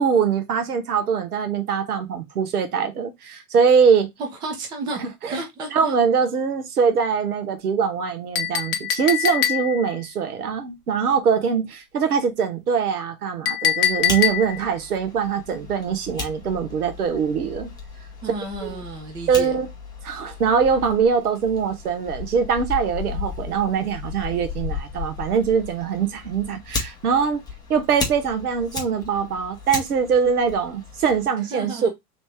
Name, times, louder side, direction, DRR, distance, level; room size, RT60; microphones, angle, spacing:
voice 1, 0.0-4.1 5.0-5.4 5.7-17.7 18.6-18.8 19.3-19.7 20.0-27.4 27.7-31.9, right 6 dB, 70° right, 1.0 m, -22 dB
voice 2, 4.4-5.0 5.3-6.0 18.2-19.5 31.5-31.9, right 2 dB, 10° right, 0.4 m, -32 dB
Chink clink, 8.3-9.9 13.5-14.7, left 11 dB, 40° left, 0.6 m, -23 dB
Fire, 13.9-31.3, left 4 dB, 10° left, 0.8 m, -35 dB
3.2 x 2.7 x 3.3 m
figure-of-eight pair, 105°, 46 cm